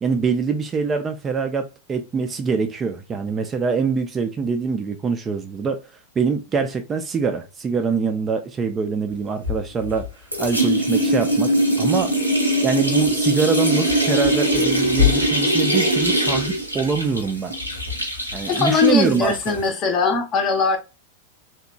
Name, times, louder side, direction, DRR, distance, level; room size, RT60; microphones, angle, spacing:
voice 1, 0.0-5.8 6.2-10.1 10.4-11.5 11.8-12.2 12.6-17.5 18.3-19.6, right 5 dB, 20° right, 0.3 m, -24 dB
sound 1, 9.4-10.1 10.3-19.7, equal, 90° left, 0.6 m, -21 dB
voice 2, 18.5-20.8, left 4 dB, 30° left, 0.6 m, -20 dB
2.8 x 2.1 x 2.3 m
figure-of-eight pair, 90°, 0 cm